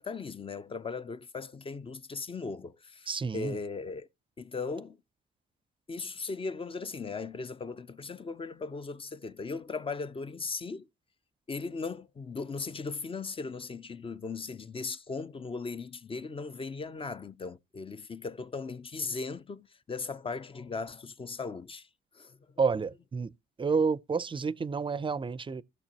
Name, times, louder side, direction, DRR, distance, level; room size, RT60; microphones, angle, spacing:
voice 1, 0.0-4.1 4.4-5.0 5.9-10.9 11.5-21.9 22.1-22.4, left 4 dB, 25° left, 0.5 m, -38 dB
voice 2, 3.1-3.6 22.6-23.3 23.6-25.6, right 5 dB, 25° right, 0.5 m, -29 dB
15.5 x 6.7 x 2.9 m
cardioid pair, 90°, 20 cm